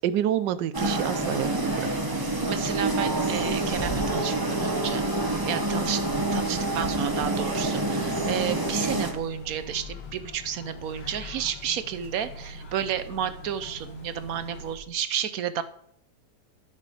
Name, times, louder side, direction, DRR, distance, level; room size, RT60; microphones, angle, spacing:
voice 1, 0.0-1.9 2.2-2.3, right 11 dB, 85° right, 15 dB, 1.3 m, -28 dB
sound 1, 0.7-9.1, right 2 dB, 15° right, 0.8 m, -27 dB
sound 2, 1.2-14.8, equal, 85° left, 1.9 m, -42 dB
voice 2, 2.5-5.0 5.5-15.6, right 9 dB, 65° right, 12 dB, 1.0 m, -31 dB
10.0 x 5.9 x 4.9 m, 0.67 s
omnidirectional pair, 1.8 m